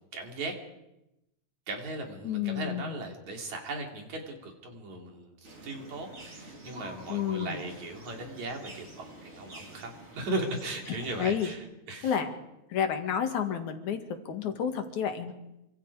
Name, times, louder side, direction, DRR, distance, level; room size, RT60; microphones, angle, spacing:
voice 1, 0.1-0.5 1.7-5.4 5.6-12.2, right 2 dB, 65° right, 2 dB, 4.6 m, -37 dB
voice 2, 2.2-2.9 7.1-7.6 10.9-11.5 12.0-12.3 12.7-15.3, left 8 dB, 75° left, 6 dB, 3.2 m, -30 dB
sound 1, 5.4-11.6, right 1 dB, 20° right, 3.4 m, -48 dB
27.0 x 25.5 x 4.9 m, 0.91 s
omnidirectional pair, 3.5 m